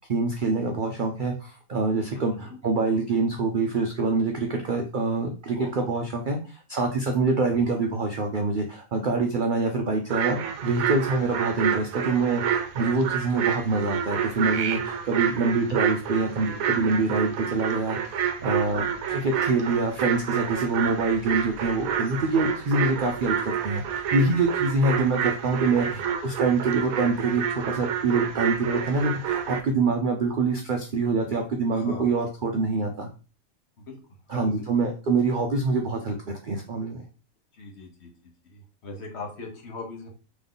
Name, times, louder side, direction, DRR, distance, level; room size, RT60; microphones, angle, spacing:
voice 1, 0.1-33.1 34.3-36.1 36.4-37.1, right 3 dB, 60° right, 2 dB, 0.5 m, -25 dB
voice 2, 5.5-5.9 7.5-7.8 25.8-26.1 31.7-32.1 33.9-34.0 34.3-34.7 37.5-38.1 38.4-40.1, left 3 dB, 50° left, 1 dB, 1.2 m, -40 dB
sound 1, 10.1-29.6, right 8 dB, 80° right, 1.0 m, -29 dB
3.5 x 3.0 x 3.8 m, 0.35 s
omnidirectional pair, 1.5 m